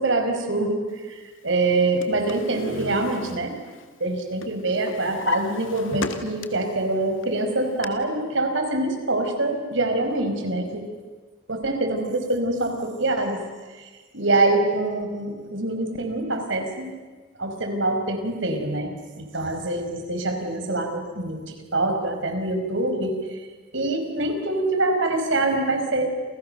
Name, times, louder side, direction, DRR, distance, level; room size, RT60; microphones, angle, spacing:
voice 1, 0.0-3.5 4.0-10.9 11.5-13.4 13.8-17.0 17.4-18.9 19.2-23.4 23.7-26.1, right 2 dB, 65° right, 5 dB, 5.0 m, -25 dB
Drawer open or close, 1.7-4.1 4.4-6.7 7.2-7.9, left 4 dB, 75° left, 2.1 m, -34 dB
29.5 x 29.0 x 6.8 m, 1.3 s
head